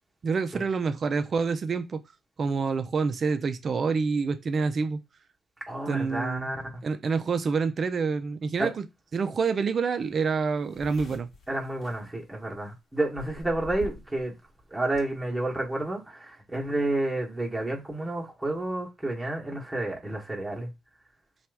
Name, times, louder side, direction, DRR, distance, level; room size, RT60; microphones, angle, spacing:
voice 1, 0.2-2.0 2.4-5.0 5.9-6.5 6.8-8.9 9.1-11.3, right 5 dB, 45° right, 0.4 m, -27 dB
voice 2, 5.7-6.6 8.6-8.7 11.5-14.3 14.7-20.7, right 2 dB, 10° right, 1.0 m, -30 dB
sound 1, 10.0-10.1 10.3-12.7 13.2-14.2 14.5-15.0, left 2 dB, 65° left, 1.0 m, -43 dB
2.8 x 2.3 x 3.3 m
cardioid pair, 90°, 0 cm